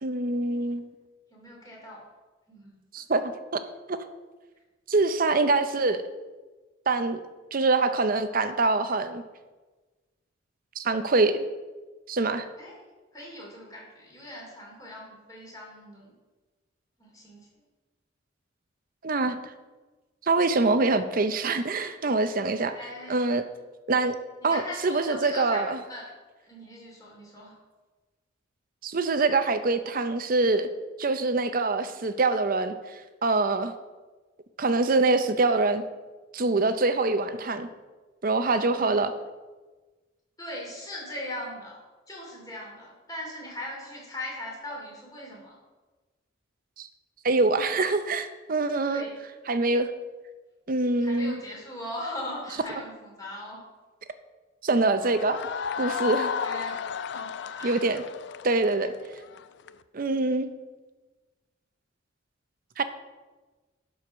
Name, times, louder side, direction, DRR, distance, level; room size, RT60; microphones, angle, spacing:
voice 1, 0.0-0.9 2.9-3.3 3.9-4.0 4.9-6.0 6.9-7.2 7.5-9.2 10.8-11.5 12.1-12.5 19.0-19.4 20.2-22.7 23.1-23.4 23.9-24.1 24.4-25.8 28.8-30.7 31.0-33.7 34.6-35.8 36.3-37.7 38.2-39.1 46.8-46.9 47.2-49.1 49.5-49.9 50.7-51.4 54.6-55.4 55.8-56.3 57.6-58.0 58.4-58.9 59.9-60.5 62.8-62.9, right 3 dB, 45° right, 10 dB, 0.6 m, -24 dB
voice 2, 1.3-2.0 2.5-2.8 12.6-12.8 13.1-16.1 17.0-17.5 22.7-23.3 24.4-26.1 26.4-27.5 38.7-39.0 40.4-41.8 42.1-45.6 48.9-49.1 51.0-53.6 56.2-56.8 57.1-57.8, left 1 dB, 20° left, -3 dB, 2.9 m, -39 dB
sound 1, 55.0-59.7, left 7 dB, 60° left, 0.4 m, -33 dB
11.5 x 4.8 x 6.1 m, 1.3 s
head